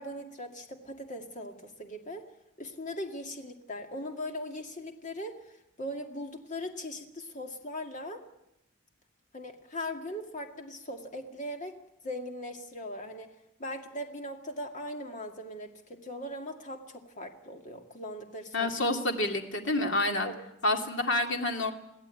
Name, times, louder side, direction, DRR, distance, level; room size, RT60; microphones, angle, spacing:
voice 1, 0.0-2.3 2.6-5.4 5.8-8.2 9.3-11.8 12.0-13.3 13.6-18.7 20.2-20.3, left 1 dB, 35° left, 4 dB, 2.1 m, -39 dB
voice 2, 18.5-20.3 20.6-21.7, left 2 dB, 65° left, 3 dB, 2.5 m, -28 dB
22.0 x 15.5 x 9.1 m, 0.87 s
head